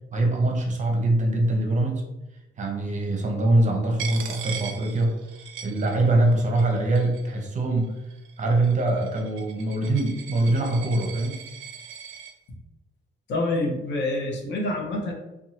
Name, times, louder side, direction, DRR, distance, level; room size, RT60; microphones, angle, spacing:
voice 1, 0.1-2.0 2.6-5.1 5.6-7.9 8.4-11.4, right 2 dB, 40° right, 2 dB, 0.6 m, -23 dB
Coin (dropping), 4.0-6.3 6.6-7.4 8.1-12.3, right 7 dB, 90° right, 0.4 m, -39 dB
voice 2, 13.3-15.1, left 2 dB, 65° left, 1 dB, 0.7 m, -27 dB
2.7 x 2.2 x 2.8 m, 0.98 s
cardioid pair, 90°, 20 cm